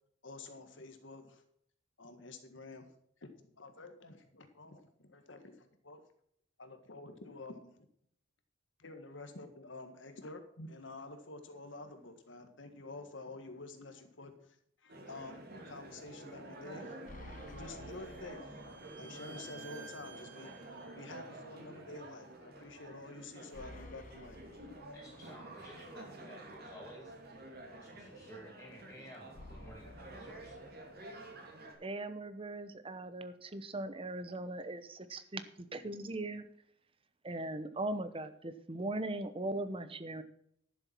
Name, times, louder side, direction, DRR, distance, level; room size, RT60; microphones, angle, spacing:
voice 1, 0.2-1.4 2.0-2.9 3.2-6.0 6.6-7.7 8.8-17.0 17.5-18.6 19.0-20.7 20.9-24.4, left 2 dB, 70° left, 7 dB, 1.7 m, -49 dB
sound 1, 14.9-31.7, right 2 dB, 55° right, 2.7 m, -50 dB
sound 2, 17.1-19.1 19.4-19.5 23.5-25.5 29.3-31.3, left 2 dB, 45° left, 0.8 m, -53 dB
Bowed string instrument, 17.2-21.0, right 6 dB, 75° right, 3.4 m, -55 dB
voice 2, 24.9-30.6, equal, 5° left, -5 dB, 2.4 m, -54 dB
voice 3, 31.8-36.4 37.2-40.2, right 2 dB, 30° right, 11 dB, 0.9 m, -39 dB
11.5 x 7.1 x 6.0 m, 0.69 s
head